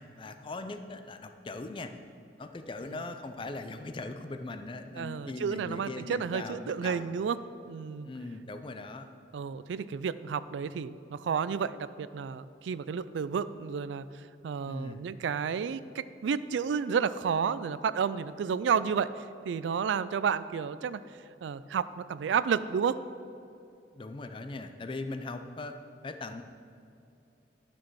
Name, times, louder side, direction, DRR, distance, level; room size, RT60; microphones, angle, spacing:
voice 1, 0.0-1.9 2.4-7.1 8.0-9.1 14.7-15.0 23.9-25.7 26.0-26.4, left 2 dB, 30° left, 8 dB, 0.4 m, -40 dB
voice 2, 5.0-7.4 7.7-8.1 9.3-21.0 21.4-23.0, right 6 dB, 85° right, 15 dB, 0.3 m, -31 dB
11.0 x 6.2 x 4.7 m, 2.7 s
head